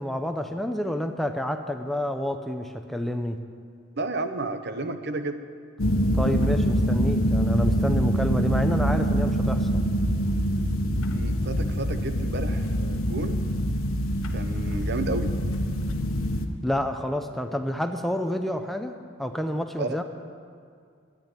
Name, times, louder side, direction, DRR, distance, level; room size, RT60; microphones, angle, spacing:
voice 1, 0.0-3.4 6.1-9.8 16.6-20.0, left 1 dB, ahead, 6 dB, 0.6 m, -29 dB
voice 2, 4.0-5.4 11.1-13.4 14.3-15.3 19.8-20.0, right 2 dB, 55° right, 8 dB, 0.9 m, -32 dB
sound 1, 5.8-16.5, equal, 85° left, 1.2 m, -25 dB
13.5 x 10.0 x 9.1 m, 2.2 s
head